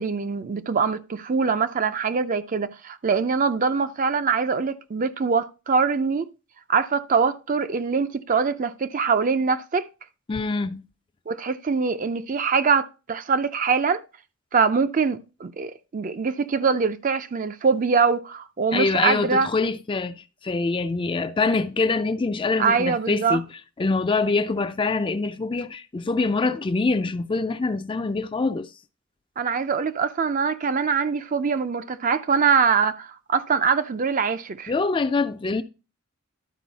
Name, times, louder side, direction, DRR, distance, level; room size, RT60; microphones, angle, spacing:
voice 1, 0.0-6.3 6.7-9.9 11.3-14.0 14.5-19.5 22.6-23.4 29.4-34.7, right 5 dB, 40° right, 0.4 m, -23 dB
voice 2, 10.3-10.8 18.7-23.5 23.8-28.7 34.7-35.6, left 3 dB, 25° left, 0.4 m, -24 dB
11.5 x 4.5 x 4.0 m
head